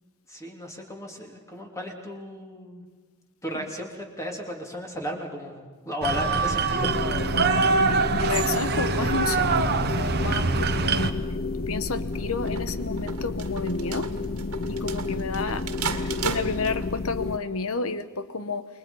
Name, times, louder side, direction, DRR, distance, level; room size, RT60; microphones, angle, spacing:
voice 1, 0.3-2.8 3.4-6.9 7.2-7.4, left 1 dB, 15° left, 2 dB, 3.2 m, -35 dB
sound 1, 6.0-11.1, right 4 dB, 45° right, 1.0 m, -24 dB
sound 2, 6.8-17.4, left 3 dB, 45° left, 0.7 m, -31 dB
voice 2, 7.3-11.2 11.6-14.1 14.7-18.7, left 4 dB, 70° left, 12 dB, 1.2 m, -31 dB
sound 3, 12.1-17.0, right 5 dB, 80° right, 1.9 m, -34 dB
28.5 x 22.0 x 5.6 m, 1.4 s
head